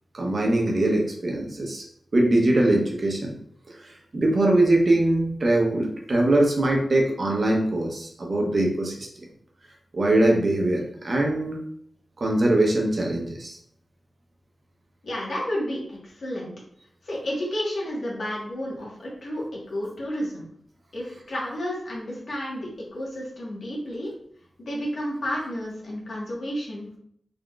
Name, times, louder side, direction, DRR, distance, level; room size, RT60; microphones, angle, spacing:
voice 1, 0.1-1.8 2.1-3.4 3.7-9.1 9.9-11.6 12.2-13.6, right 1 dB, 50° right, 0 dB, 0.9 m, -22 dB
voice 2, 15.0-16.5 17.0-20.5 20.9-24.1 24.6-27.0, equal, 75° left, -4 dB, 1.5 m, -31 dB
3.8 x 3.5 x 2.4 m, 0.67 s
wide cardioid pair, 90°, 0 cm